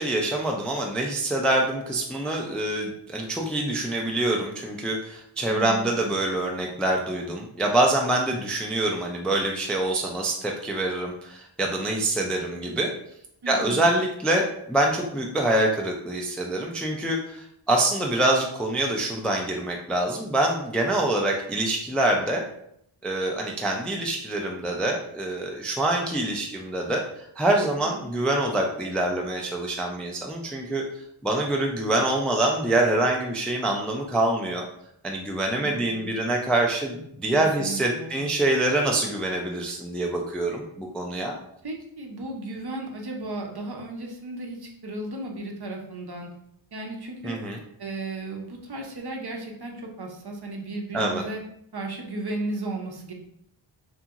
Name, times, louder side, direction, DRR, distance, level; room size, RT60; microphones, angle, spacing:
voice 1, 0.0-12.9 13.5-22.4 23.0-27.0 27.4-30.8 31.2-34.6 35.0-41.3 47.2-47.6 50.9-51.2, right 1 dB, ahead, 1 dB, 0.3 m, -25 dB
voice 2, 5.5-6.2 13.4-13.9 27.8-28.1 35.6-36.2 37.4-38.3 41.6-46.3 46.7-47.4 47.8-51.4 51.7-53.1, right 2 dB, 50° right, 1 dB, 0.6 m, -35 dB
2.8 x 2.7 x 2.4 m, 0.72 s
wide cardioid pair, 45°, 50 cm